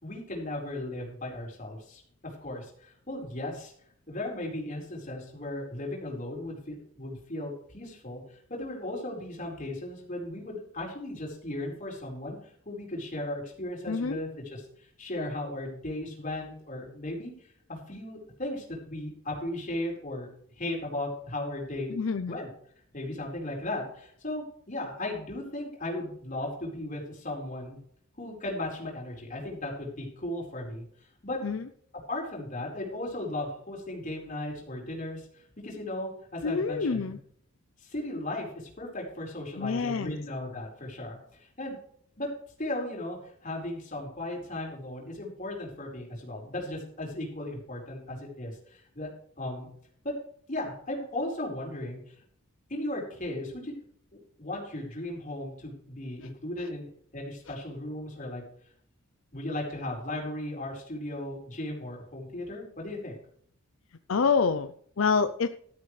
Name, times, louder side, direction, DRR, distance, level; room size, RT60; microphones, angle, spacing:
voice 1, 0.0-3.7 4.1-12.4 12.6-17.3 17.7-20.3 20.6-21.9 22.3-22.5 22.9-27.8 28.2-30.9 31.2-31.4 32.1-37.1 37.8-41.8 42.2-42.3 42.6-49.1 49.4-49.7 50.0-50.1 50.5-52.1 52.7-53.7 54.1-58.4 59.3-63.2, left 1 dB, 40° left, -1 dB, 4.7 m, -36 dB
voice 2, 13.9-14.2 21.9-22.4 31.4-31.7 36.4-37.2 39.6-40.2 64.1-65.5, left 5 dB, 80° left, 10 dB, 0.6 m, -27 dB
13.0 x 13.0 x 3.3 m, 0.63 s
head